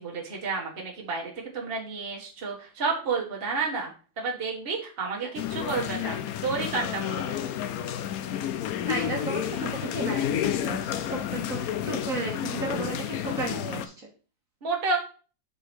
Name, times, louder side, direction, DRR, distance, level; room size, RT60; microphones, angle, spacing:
voice 1, 0.0-3.9 4.2-6.2 6.4-7.5 14.6-15.0, right 4 dB, 30° right, -2 dB, 1.6 m, -30 dB
sound 1, 5.4-13.9, left 10 dB, 70° left, 0.9 m, -31 dB
voice 2, 8.8-14.1, right 2 dB, 50° right, -1 dB, 1.8 m, -34 dB
4.8 x 4.8 x 5.9 m, 0.37 s
omnidirectional pair, 2.0 m